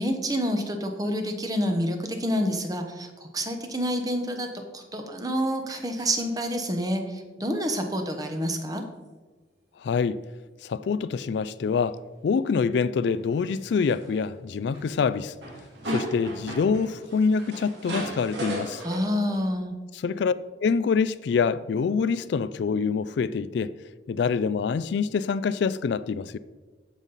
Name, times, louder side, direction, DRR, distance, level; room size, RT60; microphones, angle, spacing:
voice 1, 0.0-4.5 4.7-8.8 18.8-19.7, equal, 20° right, 0.9 m, -28 dB
sound 1, 5.7-6.3 11.8-11.9 13.0-13.2 13.6-14.3 14.7-15.0 15.2-19.0, right 1 dB, 65° right, 2.3 m, -36 dB
voice 2, 9.8-10.2 10.6-15.3 15.9-18.8 19.9-20.3 20.6-23.7 24.1-26.4, left 5 dB, 60° left, 0.3 m, -25 dB
14.5 x 5.5 x 4.0 m
head